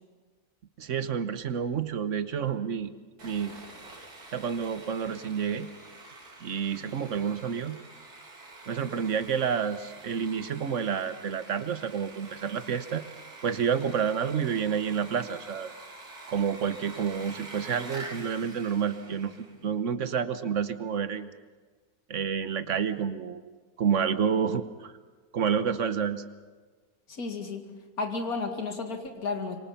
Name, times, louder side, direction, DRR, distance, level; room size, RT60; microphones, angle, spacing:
voice 1, 0.8-2.9 3.2-3.5 4.3-5.7 6.4-7.8 8.7-13.0 13.4-15.7 16.3-21.3 22.1-23.4 23.8-24.9 25.3-26.2, right 7 dB, 55° right, 11 dB, 1.3 m, -29 dB
Sawing, 3.2-19.6, right 2 dB, 85° right, 3.6 m, -47 dB
voice 2, 27.1-27.7 28.0-29.6, left 3 dB, 70° left, 5 dB, 2.6 m, -32 dB
26.5 x 24.0 x 5.8 m, 1.4 s
omnidirectional pair, 1.6 m